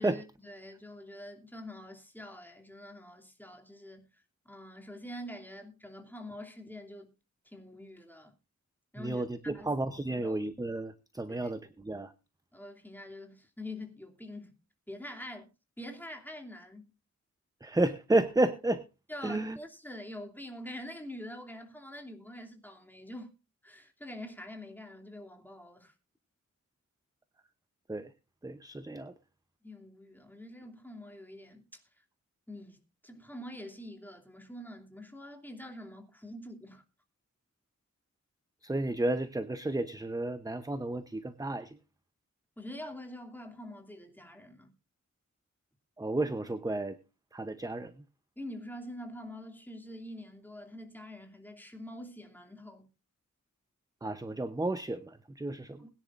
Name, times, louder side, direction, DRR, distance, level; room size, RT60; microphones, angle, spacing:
voice 1, 0.0-7.1 7.4-8.4 8.9-9.2 9.5-9.7 10.1-10.4 11.3-11.5 12.5-14.5 14.9-15.5 15.8-16.9 19.1-23.3 23.6-25.9 29.6-32.0 32.5-36.8 42.6-44.7 48.4-52.9 55.8-55.9, left 1 dB, 5° left, 2.7 m, -45 dB
voice 2, 9.0-12.1 17.6-18.8 19.2-19.6 27.9-28.1 28.4-29.1 38.6-41.8 46.0-47.0 47.3-47.9 54.0-55.9, right 2 dB, 10° right, 0.7 m, -32 dB
21.5 x 10.5 x 2.5 m
wide cardioid pair, 110°, 30 cm